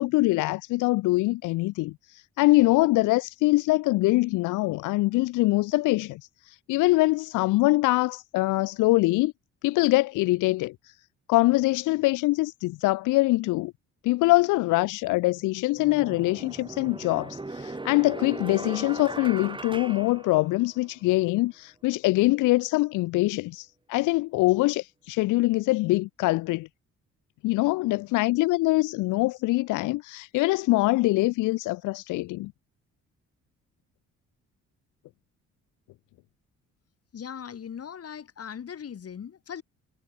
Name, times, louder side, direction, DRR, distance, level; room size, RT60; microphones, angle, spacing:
voice 1, 0.0-9.3 9.6-10.9 11.3-13.7 14.0-26.7 27.4-32.5, left 20 dB, 90° left, 0.5 m, -24 dB
sound 1, 15.0-15.1 15.8-20.9, right 2 dB, 15° right, 4.2 m, -38 dB
voice 2, 37.1-39.6, left 8 dB, 50° left, 5.3 m, -39 dB
cardioid pair, 90°, 30 cm